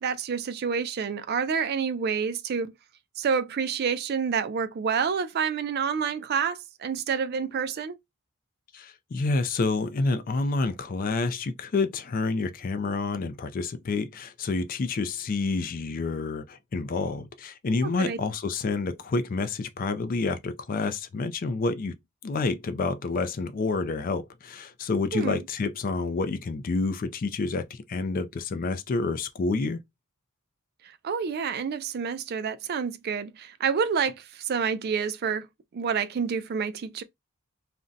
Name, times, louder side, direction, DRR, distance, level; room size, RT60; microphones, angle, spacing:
voice 1, 0.0-2.7 3.2-8.0 18.0-18.2 25.1-25.4 30.8-35.5 35.7-37.0, right 6 dB, 45° right, 0.3 m, -28 dB
voice 2, 8.7-22.0 22.2-29.8, left 3 dB, 40° left, 0.4 m, -28 dB
2.5 x 2.1 x 3.8 m
head